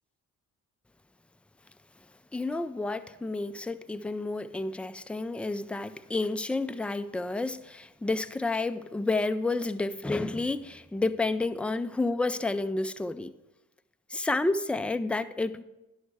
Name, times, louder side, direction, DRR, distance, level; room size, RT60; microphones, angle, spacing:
voice 1, 2.3-13.3 14.1-15.6, left 2 dB, 5° left, 11 dB, 0.3 m, -30 dB
11.0 x 5.6 x 4.6 m, 1.0 s
hypercardioid pair, 45°, 40 cm